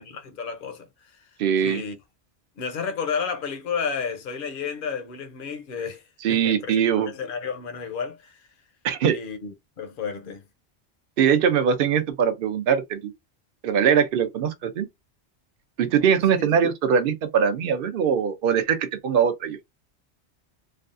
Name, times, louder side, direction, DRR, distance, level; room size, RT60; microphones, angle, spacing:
voice 1, 0.0-1.3 1.6-2.0 2.6-6.0 6.3-8.5 9.1-10.4, left 6 dB, 55° left, 0.7 m, -32 dB
voice 2, 1.4-1.8 6.2-7.1 8.8-9.2 11.2-13.1 13.6-14.9 15.8-19.6, right 7 dB, 60° right, 0.7 m, -22 dB
3.3 x 2.3 x 2.5 m
omnidirectional pair, 1.2 m